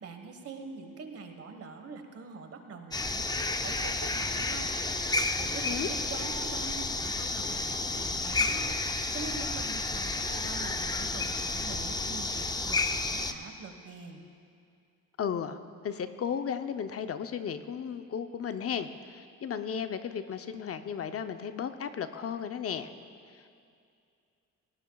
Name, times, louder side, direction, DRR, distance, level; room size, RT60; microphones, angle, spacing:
voice 1, 0.0-4.7 5.4-8.7 9.1-14.2, right 4 dB, 50° right, 5 dB, 1.4 m, -44 dB
sound 1, 2.9-13.3, left 3 dB, 15° left, 0.6 m, -31 dB
voice 2, 15.2-15.6 15.8-22.9 23.3-23.5, left 7 dB, 50° left, 9 dB, 0.7 m, -35 dB
18.5 x 17.5 x 2.3 m, 2.4 s
cardioid pair, 90°, 30 cm